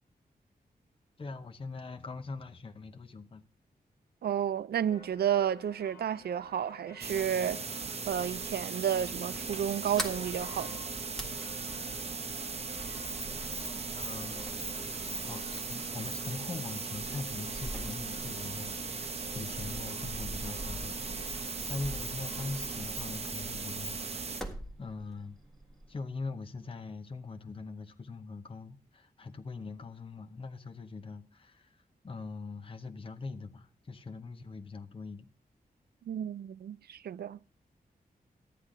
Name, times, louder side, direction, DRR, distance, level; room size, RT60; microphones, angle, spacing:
voice 1, 1.2-3.4 13.9-14.7 15.3-24.5 24.8-25.4 25.9-35.3, left 3 dB, 35° left, 0.8 m, -42 dB
voice 2, 4.2-7.6 8.1-10.8 36.1-37.4, right 9 dB, 85° right, 0.4 m, -31 dB
sound 1, 4.9-22.7, left 5 dB, 75° left, 1.2 m, -53 dB
sound 2, 7.0-24.4, right 4 dB, 40° right, 0.8 m, -38 dB
Sliding door, 9.8-26.0, equal, ahead, 1.7 m, -44 dB
13.0 x 10.0 x 3.8 m
wide cardioid pair, 170°, 16 cm